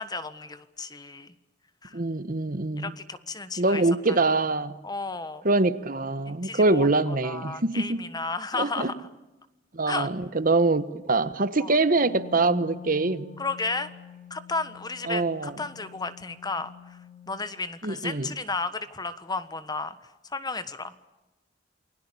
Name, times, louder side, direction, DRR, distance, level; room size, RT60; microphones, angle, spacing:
voice 1, 0.0-1.3 1.8-2.0 2.8-3.8 4.8-5.5 6.3-6.9 7.2-9.1 9.9-10.1 11.6-11.8 13.4-13.9 14.3-17.0 17.3-20.0 20.3-20.9, left 3 dB, 20° left, 1.4 m, -33 dB
voice 2, 1.9-2.9 3.6-4.7 5.4-8.0 8.5-8.9 9.7-13.3 15.1-15.5 17.8-18.3, right 3 dB, 50° right, 1.2 m, -24 dB
Wind instrument woodwind instrument, 11.8-17.5, left 7 dB, 45° left, 3.9 m, -47 dB
28.5 x 21.0 x 8.5 m
head